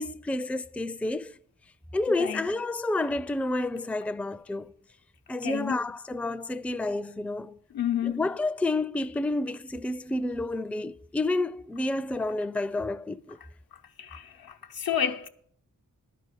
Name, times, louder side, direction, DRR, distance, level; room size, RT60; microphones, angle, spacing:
voice 1, 0.0-1.3 1.9-4.7 5.3-7.6 8.0-13.4, left 2 dB, 5° left, 0.4 m, -30 dB
voice 2, 5.4-5.8 7.7-8.2 14.0-15.3, left 9 dB, 90° left, 0.8 m, -30 dB
12.0 x 4.9 x 8.3 m
cardioid pair, 45°, 35 cm